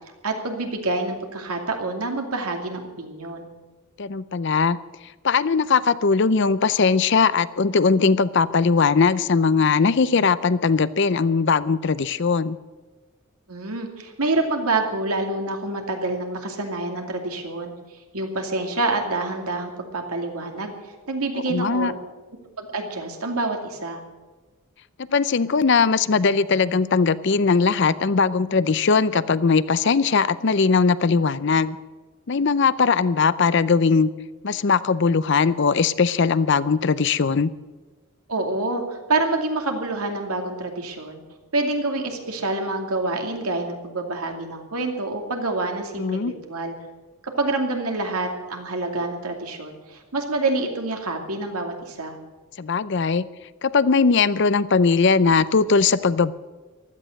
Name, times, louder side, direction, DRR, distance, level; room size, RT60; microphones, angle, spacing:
voice 1, 0.2-3.5 13.5-17.7 18.1-20.7 21.1-21.9 22.6-24.0 38.3-41.2 41.5-46.7 47.2-52.2, right 2 dB, 90° right, 3 dB, 2.5 m, -27 dB
voice 2, 4.0-4.8 5.2-12.6 21.5-21.9 25.0-31.8 32.3-34.1 34.4-37.5 46.0-46.3 52.6-53.3 53.6-56.3, left 5 dB, 55° left, 17 dB, 0.5 m, -20 dB
16.0 x 12.5 x 6.5 m, 1.3 s
head